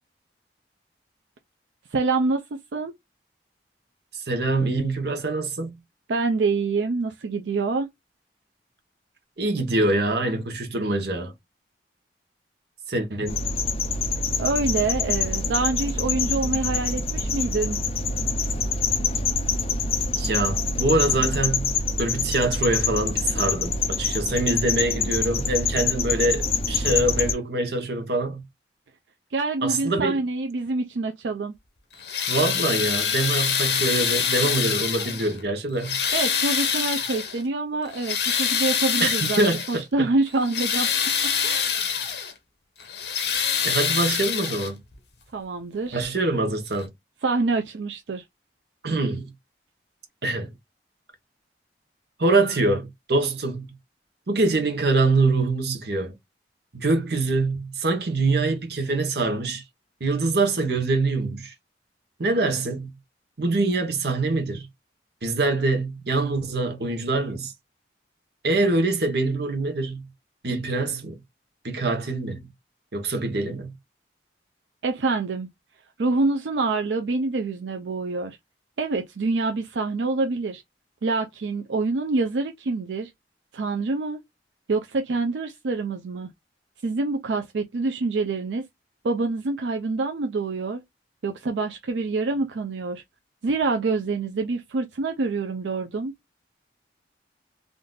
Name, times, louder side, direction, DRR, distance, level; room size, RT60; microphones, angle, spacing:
voice 1, 1.9-2.9 6.1-7.9 14.4-17.8 29.3-31.5 36.1-40.9 41.2-41.7 45.3-46.1 47.2-48.2 74.8-75.5 76.0-78.4 78.8-80.6 81.0-83.1 83.5-84.2 84.7-86.3 86.8-88.7 89.0-90.8 91.2-93.0 93.4-96.1, right 3 dB, 85° right, 0.5 m, -26 dB
voice 2, 4.1-5.8 9.4-11.3 12.9-13.4 20.2-28.4 29.6-30.2 32.3-36.0 39.0-40.1 43.6-44.8 45.9-46.9 48.8-49.3 50.2-50.5 52.2-53.6 54.3-56.1 56.7-59.6 60.0-61.5 62.2-62.9 63.4-64.7 65.2-67.5 68.4-70.1 70.4-71.2 71.6-72.5 72.9-73.7, right 2 dB, 70° right, 0.9 m, -24 dB
sound 1, 13.3-27.3, left 4 dB, 35° left, 0.5 m, -26 dB
sound 2, 31.9-35.4 35.8-37.4 37.9-39.8 40.3-42.3 42.8-44.9 46.0-46.1 46.7-46.8, left 7 dB, 75° left, 0.9 m, -25 dB
3.6 x 2.6 x 2.3 m
head